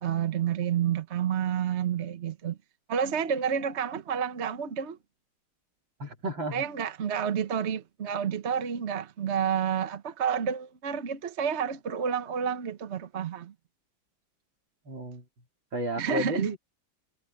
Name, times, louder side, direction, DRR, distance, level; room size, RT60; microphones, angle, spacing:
voice 1, 0.0-2.6 2.9-5.0 6.5-13.5 16.0-16.5, right 8 dB, 45° right, 1.0 m, -29 dB
voice 2, 6.0-6.6 14.8-15.2 15.7-16.6, right 1 dB, 65° right, 4.8 m, -32 dB
omnidirectional pair, 2.2 m